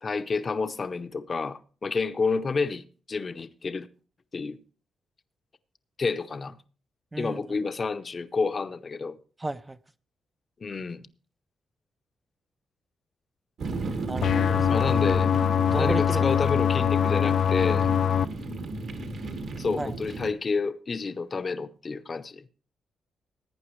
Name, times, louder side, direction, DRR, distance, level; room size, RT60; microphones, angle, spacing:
voice 1, 0.0-3.9 4.3-4.6 6.0-6.6 7.2-9.2 10.6-11.0 14.7-15.3 15.8-17.9 19.6-22.4, left 4 dB, 35° left, 0.8 m, -29 dB
voice 2, 7.1-7.4 9.4-9.8 14.1-14.8 15.7-16.3 19.8-19.9, right 2 dB, 15° right, 0.5 m, -33 dB
sound 1, 13.6-20.3, right 3 dB, 65° right, 1.8 m, -34 dB
sound 2, 14.2-18.3, left 9 dB, 65° left, 0.5 m, -23 dB
17.0 x 9.4 x 3.1 m
cardioid pair, 110°, 0 cm